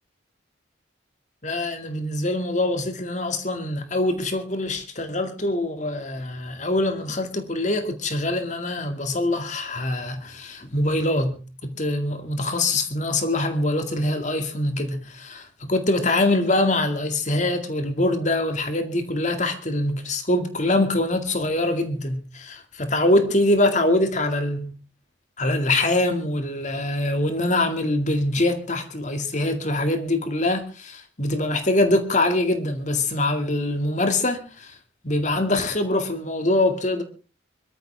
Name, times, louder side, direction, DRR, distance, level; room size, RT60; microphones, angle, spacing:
voice 1, 1.4-24.8 25.4-34.8 35.0-37.0, left 1 dB, 40° left, 2.2 m, -24 dB
24.5 x 13.5 x 3.5 m
head